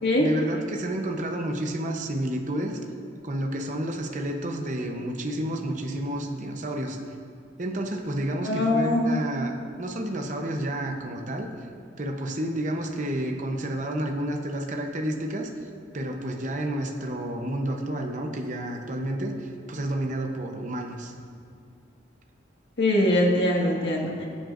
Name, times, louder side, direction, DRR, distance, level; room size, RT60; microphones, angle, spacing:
voice 1, 0.2-2.8 3.2-7.0 7.6-11.5 12.0-15.5 15.9-21.1, right 1 dB, 40° right, 2 dB, 0.8 m, -30 dB
voice 2, 8.4-9.1 22.8-24.3, left 1 dB, 65° left, -2 dB, 1.8 m, -22 dB
18.5 x 7.7 x 2.6 m, 2.4 s
head